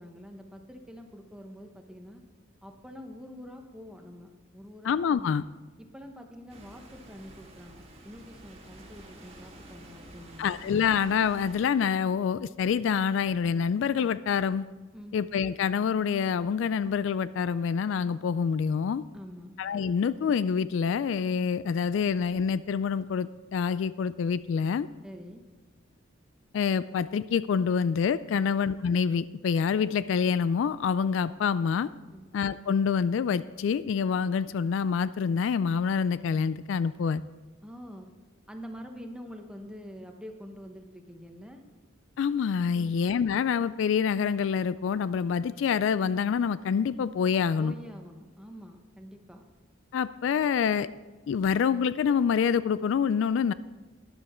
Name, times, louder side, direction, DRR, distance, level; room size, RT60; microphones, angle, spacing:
voice 1, 0.0-2.2 2.6-5.4 5.8-10.6 14.9-15.2 19.1-19.5 25.0-25.4 32.1-32.3 37.6-38.1 38.5-41.6 42.7-43.0 47.6-49.4, equal, 5° right, 4 dB, 1.0 m, -46 dB
voice 2, 4.8-5.4 10.4-14.6 15.1-19.0 19.6-24.9 26.5-31.9 32.3-37.2 42.2-47.7 49.9-50.9 51.3-53.5, left 6 dB, 65° left, 16 dB, 0.3 m, -26 dB
sound 1, 6.5-11.7, right 1 dB, 30° right, 1.8 m, -50 dB
12.5 x 10.5 x 4.3 m, 1.2 s
head